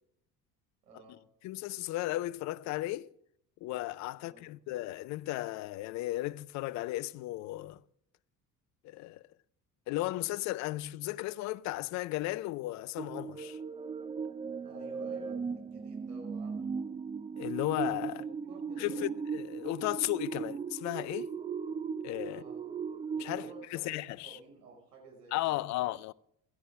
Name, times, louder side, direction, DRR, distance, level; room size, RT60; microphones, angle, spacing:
voice 1, 0.8-1.2 4.2-4.5 14.6-16.9 18.1-19.2 22.3-22.7 23.3-25.9, right 3 dB, 75° right, 5.7 m, -53 dB
voice 2, 1.4-3.1 3.6-7.8 8.8-9.2 9.9-13.6 17.4-18.2 18.8-21.3 22.0-22.4 23.2-24.4 25.3-26.1, left 17 dB, 35° left, 0.5 m, -35 dB
sound 1, 13.0-23.7, right 5 dB, 15° right, 0.7 m, -38 dB
16.0 x 14.0 x 3.6 m
figure-of-eight pair, 65°, 49 cm